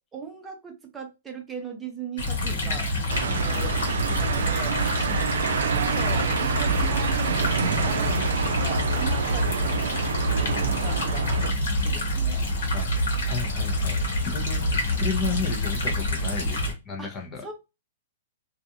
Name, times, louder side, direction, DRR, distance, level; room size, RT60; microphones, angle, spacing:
voice 1, 0.1-2.9 3.3-4.8 5.5-9.8 10.4-11.5 11.8-12.5 17.0-17.1 17.4-17.5, right 5 dB, 15° right, 0.7 m, -39 dB
sound 1, 2.2-16.7, equal, 70° left, 1.1 m, -26 dB
sound 2, 3.1-11.5, right 6 dB, 75° right, 0.4 m, -28 dB
voice 2, 13.2-17.4, left 5 dB, 25° left, 0.7 m, -33 dB
2.4 x 2.4 x 2.7 m
hypercardioid pair, 125°, 0 cm